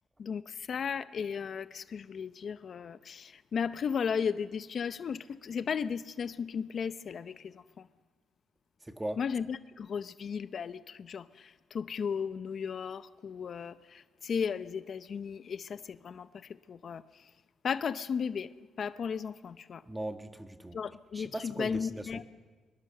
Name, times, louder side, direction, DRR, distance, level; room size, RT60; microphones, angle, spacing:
voice 1, 0.2-7.9 9.2-17.3 17.6-18.5 18.8-19.8 20.7-22.2, left 6 dB, 50° left, 0.7 m, -35 dB
voice 2, 8.8-9.2 19.9-20.8 21.1-22.2, right 1 dB, 10° right, 1.7 m, -39 dB
24.0 x 21.5 x 6.7 m
cardioid pair, 90°, 0 cm